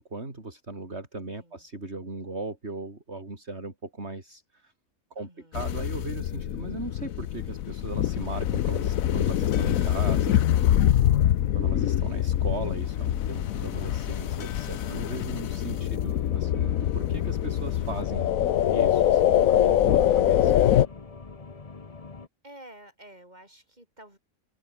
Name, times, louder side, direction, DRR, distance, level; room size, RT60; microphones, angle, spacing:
voice 1, 0.0-4.7 5.1-10.7 11.5-18.3 18.7-20.5, right 2 dB, 50° right, 4.2 m, -38 dB
voice 2, 5.2-5.7 11.2-11.7 15.7-15.9 22.4-24.2, right 1 dB, 30° right, 8.0 m, -51 dB
sound 1, 5.5-20.9, left 11 dB, 75° left, 1.2 m, -24 dB
sound 2, 13.2-22.3, left 4 dB, 25° left, 1.2 m, -44 dB
omnidirectional pair, 1.5 m